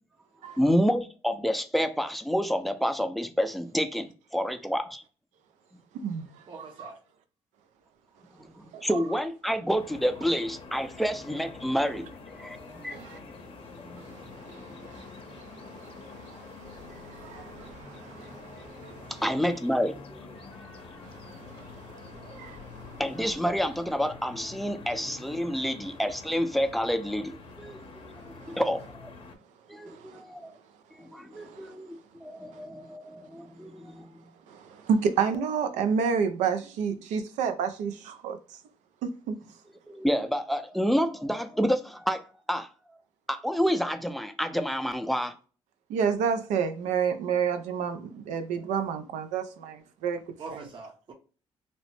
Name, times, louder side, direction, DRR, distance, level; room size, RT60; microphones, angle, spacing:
voice 1, 0.6-5.0 8.4-13.0 13.8-14.0 19.1-20.8 23.0-29.1 29.7-30.5 31.0-34.1 39.9-42.2 42.5-42.7 43.3-45.3, equal, ahead, 0.4 m, -29 dB
voice 2, 5.9-6.3 6.8-6.9 8.7-8.8 12.9-13.2 14.0-19.1 21.0-23.0 28.4-28.6 29.9-30.2 31.3-31.7 34.5-38.4 39.0-39.4 45.9-50.2 50.5-50.6, right 6 dB, 85° right, 0.5 m, -31 dB
voice 3, 6.5-7.0 19.0-19.2 50.4-51.1, right 4 dB, 45° right, 0.7 m, -43 dB
sound 1, 9.7-29.3, left 4 dB, 50° left, 0.6 m, -46 dB
2.9 x 2.0 x 3.0 m
cardioid pair, 75°, 12 cm